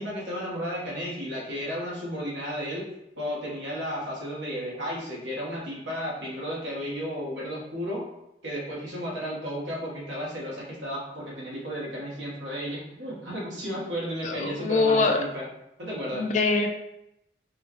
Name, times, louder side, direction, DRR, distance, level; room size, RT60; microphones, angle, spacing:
voice 1, 0.0-2.9 3.2-8.0 8.4-15.5 15.8-16.3, equal, 75° right, -5 dB, 1.2 m, -33 dB
voice 2, 14.2-15.2 16.1-16.7, left 3 dB, 40° left, 3 dB, 0.3 m, -23 dB
4.4 x 2.2 x 3.0 m, 0.86 s
head